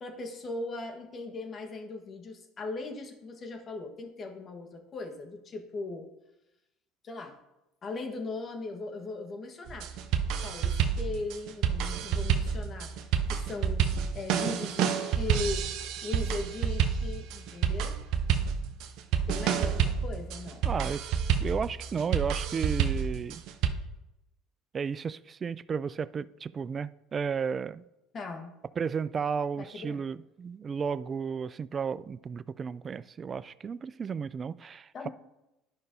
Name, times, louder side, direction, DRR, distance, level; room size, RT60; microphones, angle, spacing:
voice 1, 0.0-6.1 7.0-7.4 7.8-9.9 10.4-12.9 13.3-15.7 16.0-18.0 19.3-20.7 28.1-28.5 29.6-30.0 34.9-35.1, left 3 dB, 40° left, 1.3 m, -38 dB
sound 1, 9.7-23.7, right 8 dB, 65° right, 0.6 m, -29 dB
voice 2, 20.6-21.0 21.4-23.4 24.7-27.8 28.8-35.1, right 6 dB, 35° right, 0.3 m, -33 dB
11.5 x 5.4 x 2.6 m
hypercardioid pair, 80°, 0 cm